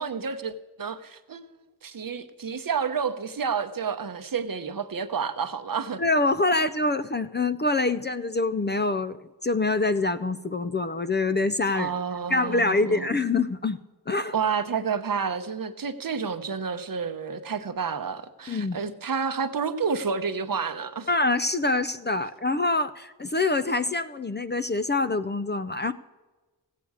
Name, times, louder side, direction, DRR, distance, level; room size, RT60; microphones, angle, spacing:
voice 1, 0.0-6.0 11.7-13.1 14.3-21.1, right 6 dB, 60° right, 10 dB, 0.8 m, -30 dB
voice 2, 6.0-11.9 12.3-13.8 14.1-14.3 18.5-18.8 21.1-25.9, left 3 dB, 30° left, 13 dB, 0.4 m, -25 dB
15.5 x 8.4 x 4.8 m, 1.2 s
wide cardioid pair, 90°, 39 cm